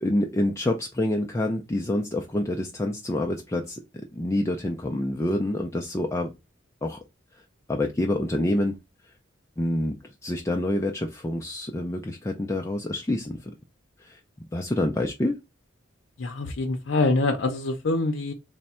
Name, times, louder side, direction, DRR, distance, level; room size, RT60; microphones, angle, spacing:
voice 1, 0.0-3.8 4.1-6.3 6.8-7.0 7.7-8.8 9.6-10.0 10.2-13.5 14.0-14.2 14.5-15.4, left 1 dB, 15° left, 0.3 m, -27 dB
voice 2, 16.2-18.3, left 2 dB, 75° left, 0.6 m, -25 dB
3.4 x 2.1 x 4.1 m
head